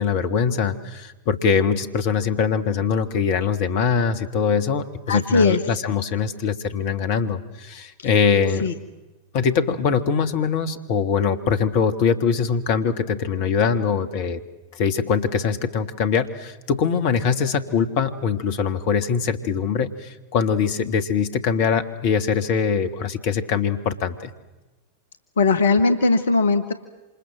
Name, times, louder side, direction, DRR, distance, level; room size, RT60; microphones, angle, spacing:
voice 1, 0.0-8.7 9.3-14.4 14.7-24.3, left 6 dB, 50° left, 10 dB, 1.9 m, -22 dB
voice 2, 5.1-5.6 8.6-8.7 25.4-26.7, left 3 dB, 65° left, 10 dB, 1.6 m, -19 dB
28.0 x 27.0 x 7.5 m, 1.1 s
figure-of-eight pair, 90°, 0 cm